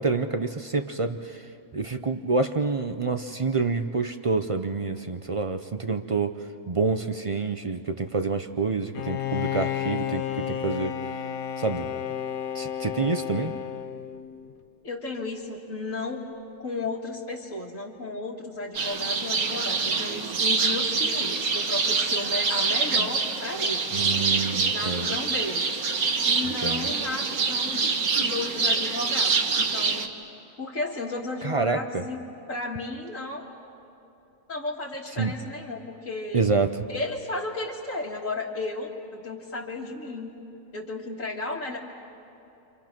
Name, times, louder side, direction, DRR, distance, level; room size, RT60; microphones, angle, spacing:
voice 1, 0.0-1.5 1.7-11.0 11.6-11.9 12.5-13.5 23.9-25.1 26.6-26.9 31.4-32.0 35.2-35.3 36.3-36.9, right 4 dB, 50° right, 8 dB, 0.3 m, -27 dB
Bowed string instrument, 8.9-14.5, left 9 dB, 75° left, 1.3 m, -32 dB
voice 2, 14.8-16.3 16.6-24.0 24.7-25.9 26.3-30.1 30.6-33.4 34.5-36.5 36.9-40.3 40.7-41.8, left 2 dB, 60° left, -6 dB, 2.2 m, -34 dB
sound 1, 18.7-30.1, right 4 dB, 75° right, 1.8 m, -25 dB
29.5 x 26.5 x 6.0 m, 2.9 s
omnidirectional pair, 1.6 m